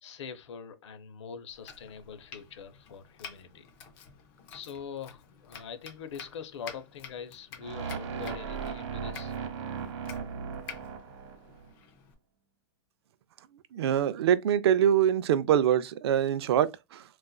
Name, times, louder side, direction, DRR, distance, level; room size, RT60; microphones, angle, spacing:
voice 1, 0.0-3.7 4.5-9.3 10.6-10.7, left 6 dB, 80° left, 0.8 m, -43 dB
Domestic sounds home sounds, 1.5-12.1, left 7 dB, 20° left, 0.4 m, -50 dB
sound 1, 7.6-11.7, right 6 dB, 85° right, 1.0 m, -37 dB
voice 2, 13.7-17.0, right 9 dB, 60° right, 0.4 m, -24 dB
4.0 x 2.4 x 2.3 m
supercardioid pair, 180°, 15 cm